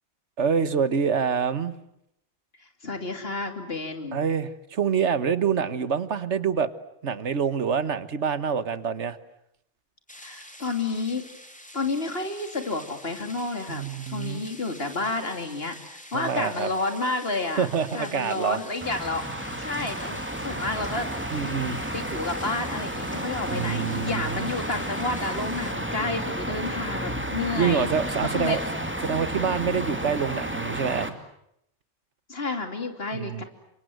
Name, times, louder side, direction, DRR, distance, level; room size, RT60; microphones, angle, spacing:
voice 1, 0.4-1.7 4.1-6.7 7.0-9.2 13.7-14.4 16.1-16.7 17.6-18.6 21.3-21.8 23.5-24.5 27.6-28.6 29.0-31.2 33.1-33.4, right 6 dB, 85° right, 14 dB, 1.6 m, -26 dB
voice 2, 2.8-4.2 10.2-11.3 11.7-17.7 17.9-19.2 19.6-20.2 20.4-21.6 21.9-27.9 28.3-28.6 32.3-33.4, left 3 dB, 60° left, 6 dB, 3.2 m, -30 dB
sound 1, 10.1-25.7, equal, 5° left, 3.1 m, -47 dB
sound 2, 18.8-31.1, right 1 dB, 10° right, 2.3 m, -32 dB
29.5 x 25.0 x 7.9 m, 0.78 s
omnidirectional pair, 1.1 m